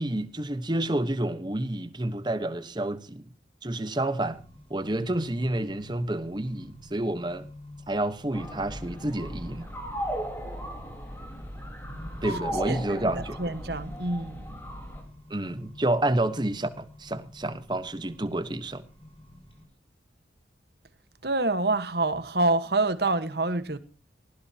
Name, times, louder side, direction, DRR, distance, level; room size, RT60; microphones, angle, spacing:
voice 1, 0.0-3.2 3.6-4.4 4.7-7.5 7.9-9.7 12.2-13.4 15.3-18.8, right 1 dB, 25° right, 1.1 m, -29 dB
Accelerating revving vroom, 4.2-19.6, left 1 dB, 30° left, 5.2 m, -49 dB
sound 1, 8.3-15.0, equal, 10° left, 4.2 m, -36 dB
voice 2, 12.7-14.5 21.2-23.8, right 2 dB, 60° right, 1.4 m, -27 dB
19.0 x 16.5 x 2.9 m
head